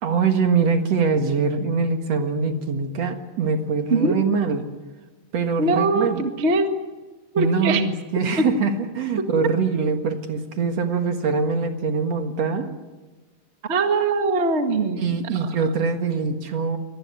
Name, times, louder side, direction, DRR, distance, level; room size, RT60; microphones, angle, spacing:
voice 1, 0.0-4.6 5.3-6.3 7.4-12.7 15.0-16.8, right 5 dB, 55° right, 6 dB, 2.6 m, -23 dB
voice 2, 5.6-6.7 7.3-7.8 13.7-15.5, right 3 dB, 25° right, 5 dB, 1.6 m, -22 dB
25.0 x 19.5 x 9.7 m, 1.2 s
omnidirectional pair, 3.7 m